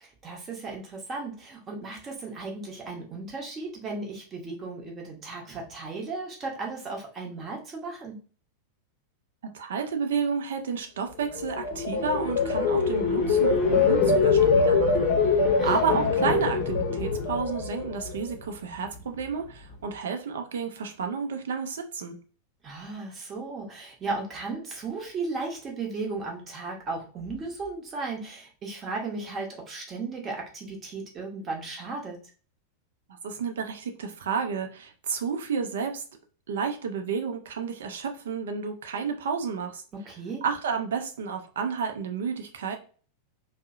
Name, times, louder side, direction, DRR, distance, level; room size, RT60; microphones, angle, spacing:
voice 1, 0.0-8.2 15.6-16.0 22.6-32.2 39.9-40.4, right 3 dB, 25° right, 0 dB, 0.8 m, -35 dB
voice 2, 9.4-15.3 15.6-22.2 33.2-36.0 36.5-39.8 40.4-42.8, right 6 dB, 60° right, 5 dB, 0.4 m, -31 dB
sound 1, 11.3-18.4 18.8-19.2, left 4 dB, 40° left, 0.6 m, -23 dB
2.6 x 2.0 x 2.4 m, 0.39 s
figure-of-eight pair, 90°, 0 cm